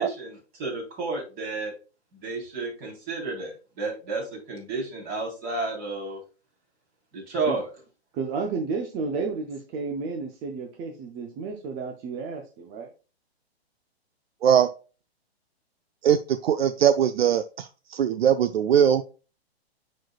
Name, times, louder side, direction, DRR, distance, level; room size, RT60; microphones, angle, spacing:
voice 1, 0.0-1.7 2.2-6.2 7.1-7.6, right 3 dB, 30° right, 0 dB, 3.4 m, -31 dB
voice 2, 8.1-12.9, right 4 dB, 15° right, 4 dB, 0.3 m, -32 dB
voice 3, 16.0-19.1, right 9 dB, 65° right, 12 dB, 0.5 m, -21 dB
10.0 x 4.1 x 2.3 m, 0.34 s
hypercardioid pair, 125°, 32 cm